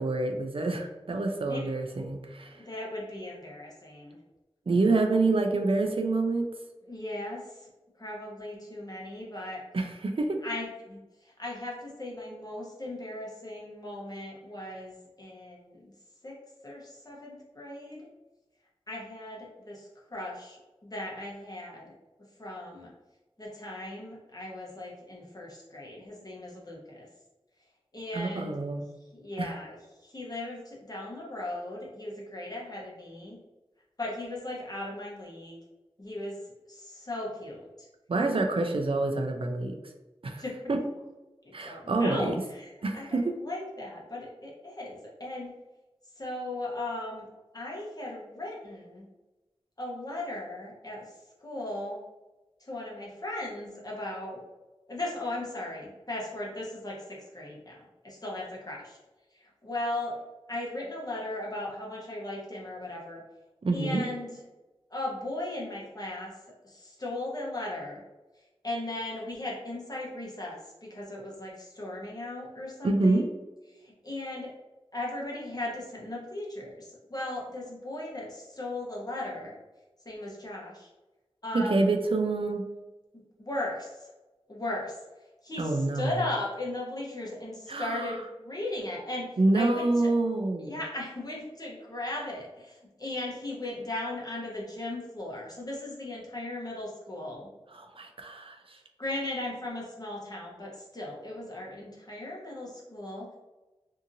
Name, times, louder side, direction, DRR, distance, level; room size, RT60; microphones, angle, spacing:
voice 1, 0.0-2.6 4.7-6.5 9.7-10.4 28.1-28.8 29.4-29.5 38.1-39.8 40.2-40.4 40.7-40.8 41.5-42.4 42.8-43.2 63.6-64.0 72.8-73.3 81.5-82.6 85.6-86.1 87.7-88.1 89.4-90.8 97.7-98.8, right 2 dB, 60° right, 4 dB, 0.4 m, -27 dB
voice 2, 2.5-4.2 6.8-7.7 8.0-9.6 10.4-15.9 16.2-16.3 16.6-18.1 18.9-21.9 22.4-22.9 23.4-27.1 27.9-28.6 29.1-29.8 30.0-33.4 34.0-35.6 36.0-36.4 36.7-37.9 40.3-40.6 41.4-45.5 46.2-47.3 47.5-49.1 49.8-51.0 51.4-52.0 52.6-54.4 54.9-57.8 58.0-59.0 59.4-60.2 60.5-63.2 63.7-64.4 64.9-66.3 66.6-68.0 68.6-70.6 70.9-73.3 73.7-74.5 74.9-79.5 80.0-80.9 81.4-81.9 83.4-84.1 84.5-85.0 85.4-89.3 89.5-90.1 90.6-97.5 99.0-103.4, left 1 dB, 40° left, -3 dB, 0.9 m, -37 dB
2.7 x 2.5 x 2.6 m, 1.1 s
wide cardioid pair, 55°, 10 cm